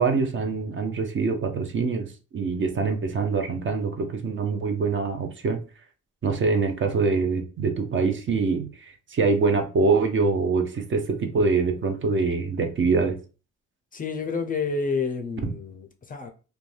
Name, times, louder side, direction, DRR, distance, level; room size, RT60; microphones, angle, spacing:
voice 1, 0.0-2.1 2.3-5.6 6.2-13.2, right 4 dB, 40° right, 0.6 m, -24 dB
voice 2, 13.9-16.3, left 4 dB, 30° left, 0.4 m, -29 dB
2.5 x 2.2 x 3.1 m
cardioid pair, 90°, 30 cm